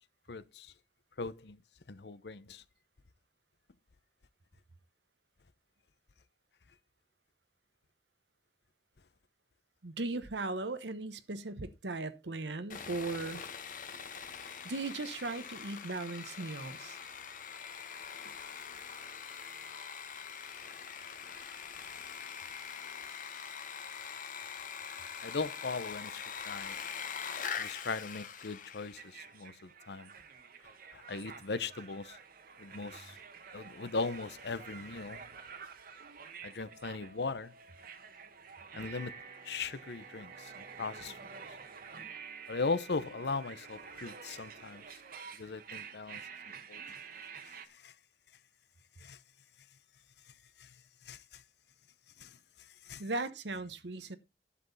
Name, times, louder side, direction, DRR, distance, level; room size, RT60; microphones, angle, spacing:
voice 1, 0.3-0.7 1.2-1.6 1.9-2.6 25.2-26.7 27.6-30.1 30.9-32.2 32.6-33.2 33.5-35.3 36.4-37.5 38.7-39.1 39.4-41.3 42.5-44.8 45.4-46.2 46.7-46.8 47.5-47.9 49.0-49.2 50.6-50.7 51.0-51.4 52.2-52.4 52.8-53.0, left 4 dB, 65° left, 0.7 m, -39 dB
voice 2, 9.8-13.4 14.6-17.0 53.0-54.2, right 3 dB, 80° right, 1.0 m, -38 dB
Sawing, 12.7-29.1, left 7 dB, 50° left, 1.3 m, -43 dB
sound 1, 28.9-47.7, right 6 dB, 55° right, 1.3 m, -49 dB
11.0 x 7.7 x 4.0 m
head